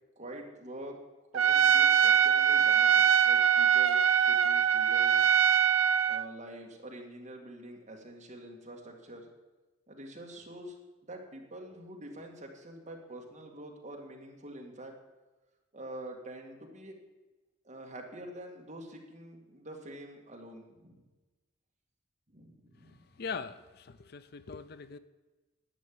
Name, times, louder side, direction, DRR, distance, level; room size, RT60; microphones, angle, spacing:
voice 1, 0.2-1.0 1.3-5.3 6.1-9.3 9.9-10.8 11.0-14.9 15.7-17.0 17.6-21.0 22.3-23.0, right 1 dB, 35° right, 0 dB, 1.9 m, -46 dB
Trumpet, 1.3-6.2, right 8 dB, 80° right, 0.5 m, -23 dB
voice 2, 23.2-25.0, left 5 dB, 50° left, 13 dB, 0.5 m, -41 dB
11.0 x 6.5 x 8.5 m, 1.2 s
head